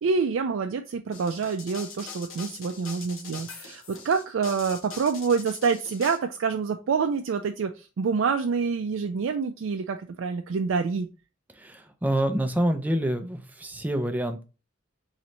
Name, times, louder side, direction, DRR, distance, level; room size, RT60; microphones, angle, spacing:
voice 1, 0.0-11.1, right 5 dB, 75° right, 5 dB, 0.4 m, -27 dB
sound 1, 1.1-6.2, left 5 dB, 85° left, 1.0 m, -42 dB
voice 2, 11.5-14.4, right 1 dB, 10° right, 7 dB, 0.4 m, -27 dB
3.2 x 3.0 x 3.8 m, 0.31 s
head